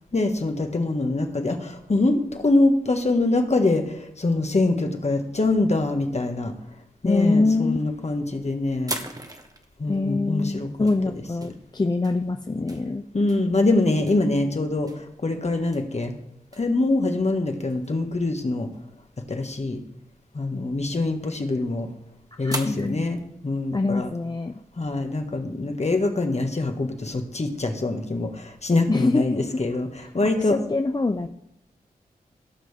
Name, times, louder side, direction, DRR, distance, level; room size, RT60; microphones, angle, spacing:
voice 1, 0.1-6.5 7.0-9.0 9.8-10.7 13.1-16.1 16.6-18.7 19.3-19.8 20.3-21.9 22.4-24.1 24.8-30.6, left 2 dB, 45° left, 4 dB, 1.8 m, -24 dB
sound 1, 6.0-6.4 7.2-7.7 8.1-8.3 8.9-17.0 17.5-18.0 18.4-18.5 18.7-18.8 19.0-19.4 19.7-19.8 20.7-21.9 22.4-24.6, right 1 dB, 20° right, 1.4 m, -39 dB
voice 2, 7.0-7.8 9.9-13.0 22.4-23.1 23.7-24.5 28.9-29.6 30.4-31.3, left 3 dB, 25° left, 6 dB, 0.6 m, -24 dB
17.5 x 6.2 x 3.7 m, 0.80 s
cardioid pair, 40°, 16 cm